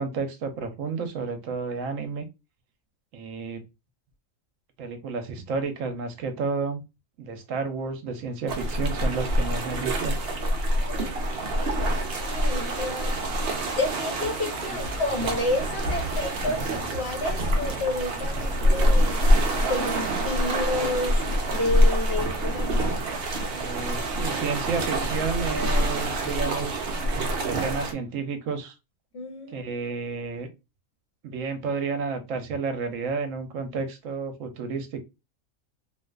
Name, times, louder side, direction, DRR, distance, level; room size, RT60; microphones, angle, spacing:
voice 1, 0.0-2.2 3.1-3.6 4.8-6.8 7.2-10.1 14.7-14.8 23.5-26.9 27.4-28.7 29.5-30.5 31.2-35.0, right 4 dB, 75° right, 1.0 m, -31 dB
sound 1, 8.5-27.9, equal, 60° right, 0.7 m, -26 dB
voice 2, 10.9-13.2 13.7-21.2 21.5-22.8 29.1-29.7, left 2 dB, 55° left, 1.0 m, -31 dB
2.5 x 2.4 x 2.2 m
omnidirectional pair, 1.4 m